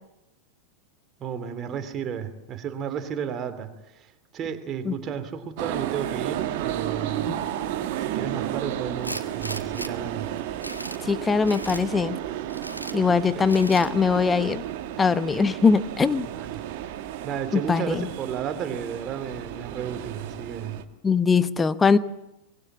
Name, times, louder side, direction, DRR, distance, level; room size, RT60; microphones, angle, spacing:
voice 1, 1.2-4.1 4.3-7.4 8.1-10.3 16.2-16.6 17.2-20.8, right 7 dB, 30° right, 8 dB, 2.8 m, -33 dB
sound 1, 5.6-20.8, right 12 dB, 50° right, 1.9 m, -33 dB
Tools, 9.0-9.9 10.4-11.0 11.5-11.8 12.5-13.0 13.5-13.9, equal, 90° right, 1.5 m, -36 dB
voice 2, 11.0-12.2 12.9-14.6 15.0-16.3 17.5-18.1 21.0-22.0, left 5 dB, 15° left, 15 dB, 1.0 m, -21 dB
24.0 x 22.5 x 7.6 m, 0.92 s
figure-of-eight pair, 90°, 0 cm